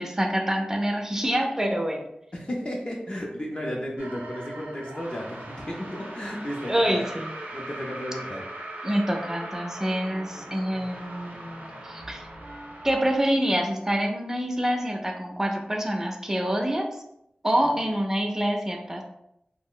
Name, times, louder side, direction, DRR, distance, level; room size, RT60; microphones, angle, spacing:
voice 1, 0.0-2.0 6.7-7.3 8.8-12.2 12.8-16.9 17.4-19.0, equal, 15° right, 2 dB, 0.4 m, -26 dB
voice 2, 2.3-7.1 7.5-8.5 10.1-10.5 17.6-17.7, equal, 35° left, -2 dB, 0.5 m, -34 dB
sound 1, 4.0-13.2, right 1 dB, 75° right, 0.6 m, -40 dB
2.4 x 2.0 x 3.7 m, 0.78 s
wide cardioid pair, 70°, 3 cm